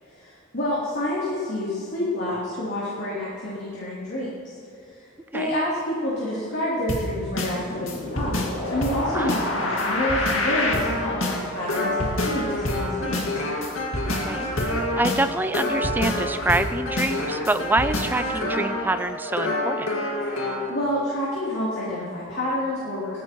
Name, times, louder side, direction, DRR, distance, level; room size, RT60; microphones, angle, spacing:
voice 1, 0.1-4.3 4.9-5.1 5.3-8.4 8.7-13.3 20.7-23.2, left 1 dB, 55° left, -9 dB, 3.1 m, -28 dB
sound 1, 6.9-20.7, left 1 dB, 75° left, 2.0 m, -27 dB
voice 2, 9.1-9.4 14.2-19.9, right 2 dB, 10° right, 10 dB, 0.3 m, -26 dB
19.5 x 15.0 x 3.1 m, 2.6 s
head